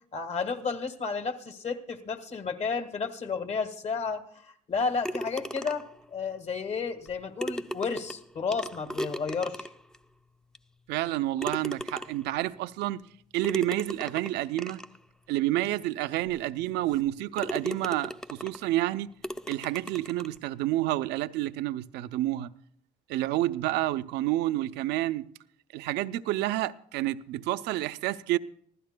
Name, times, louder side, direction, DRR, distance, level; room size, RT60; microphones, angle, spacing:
voice 1, 0.1-5.8 6.1-9.7, left 5 dB, 40° left, 1.6 m, -32 dB
sound 1, 5.0-6.0 7.1-7.2 7.4-10.0 10.6-10.7 11.4-12.4 13.4-15.0 15.7-15.8 16.3-16.4 16.9-17.1 17.4-18.7 19.2-20.4, equal, 5° left, 0.5 m, -37 dB
voice 2, 10.9-13.1 13.3-14.8 15.3-19.1 19.5-22.5 23.1-25.3 25.7-28.4, right 15 dB, 85° right, 0.5 m, -29 dB
25.5 x 15.5 x 2.2 m
cardioid pair, 110°, 17 cm